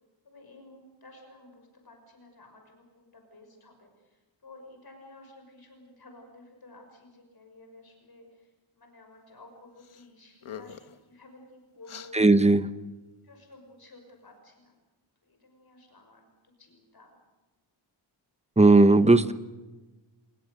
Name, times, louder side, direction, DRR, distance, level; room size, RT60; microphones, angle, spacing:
voice 1, 0.2-12.2 13.2-14.8 15.2-17.2, left 2 dB, 50° left, 4 dB, 6.1 m, -53 dB
sound 1, 9.8-10.1 10.4-11.0 11.8-12.1, left 8 dB, 80° left, 1.6 m, -43 dB
voice 2, 12.1-12.7 18.6-19.3, right 2 dB, 15° right, 12 dB, 1.1 m, -17 dB
28.5 x 21.0 x 6.7 m, 1.2 s
wide cardioid pair, 115°, 49 cm